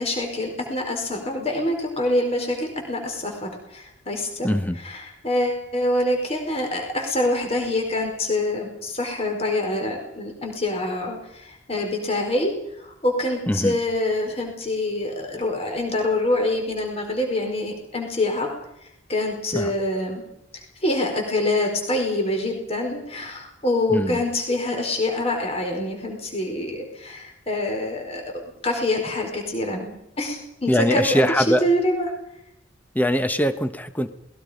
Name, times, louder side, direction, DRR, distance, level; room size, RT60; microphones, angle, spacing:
voice 1, 0.0-4.5 4.8-18.5 19.1-20.2 20.5-32.1, left 1 dB, 30° left, 3 dB, 4.9 m, -25 dB
voice 2, 4.4-4.8 13.5-13.7 19.5-19.7 23.9-24.2 30.7-31.7 32.9-34.1, equal, 10° left, 9 dB, 1.2 m, -22 dB
27.5 x 21.0 x 5.2 m, 0.79 s
head